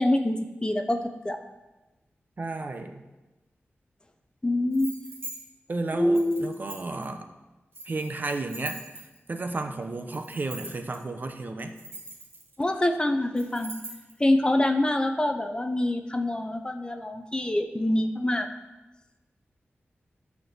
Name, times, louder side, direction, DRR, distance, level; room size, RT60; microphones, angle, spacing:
voice 1, 0.0-1.4 4.4-4.9 5.9-6.5 12.6-13.7 14.2-18.5, left 1 dB, 20° left, 7 dB, 0.6 m, -25 dB
voice 2, 2.4-3.0 5.7-7.3 7.9-8.8 9.3-11.7, right 2 dB, 45° right, 6 dB, 0.7 m, -32 dB
sound 1, 4.7-5.4 6.1-7.0 7.7-9.3 10.1-11.0 11.6-12.7 13.4-14.1, right 2 dB, 65° right, 1.9 m, -42 dB
9.4 x 4.5 x 6.6 m, 1.1 s
wide cardioid pair, 105°, 4 cm